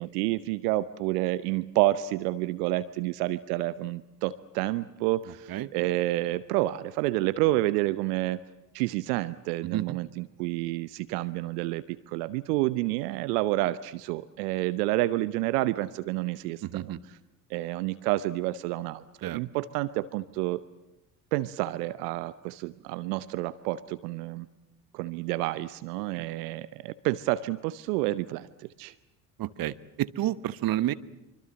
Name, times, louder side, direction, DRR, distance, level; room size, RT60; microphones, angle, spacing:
voice 1, 0.0-8.4 8.7-17.2 17.5-20.6 21.3-24.5 24.9-28.9, right 17 dB, 65° right, 16 dB, 0.9 m, -29 dB
voice 2, 16.6-17.0 19.2-19.4 26.1-26.2 29.4-30.9, right 13 dB, 45° right, 16 dB, 1.1 m, -30 dB
25.5 x 24.5 x 7.8 m, 0.95 s
figure-of-eight pair, 60°, 50 cm